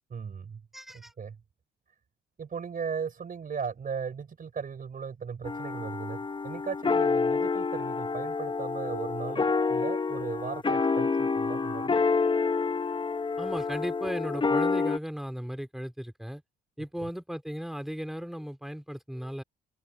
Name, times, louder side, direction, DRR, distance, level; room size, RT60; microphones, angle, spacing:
voice 1, 0.1-0.6 0.9-1.4 2.4-6.2 6.4-12.0, right 6 dB, 45° right, 4.2 m, -37 dB
voice 2, 0.7-1.1 13.4-16.4 16.8-19.4, equal, ahead, 4.0 m, -36 dB
sound 1, 5.4-15.0, left 4 dB, 25° left, 0.9 m, -28 dB
open air
cardioid pair, 90°, 20 cm